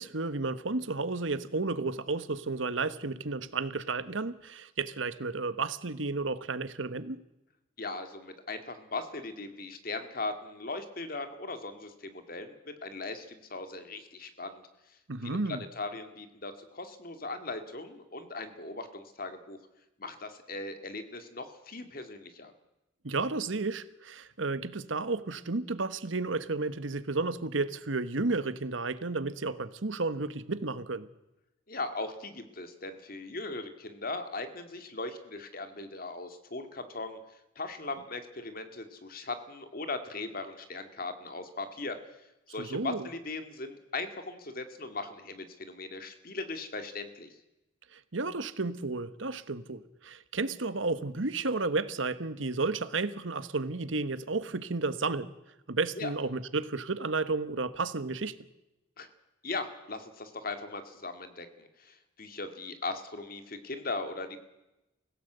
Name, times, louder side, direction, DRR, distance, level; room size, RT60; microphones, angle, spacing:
voice 1, 0.0-7.2 15.1-15.6 23.0-31.1 42.6-43.1 47.9-55.3 55.7-58.4, right 3 dB, 80° right, 1.3 m, -32 dB
voice 2, 7.8-14.6 15.2-15.4 15.8-19.6 20.0-22.5 31.7-37.2 37.6-42.0 42.5-47.3 56.0-56.1 59.0-59.1 59.4-64.4, left 3 dB, 50° left, 2.2 m, -39 dB
24.5 x 16.5 x 8.0 m
head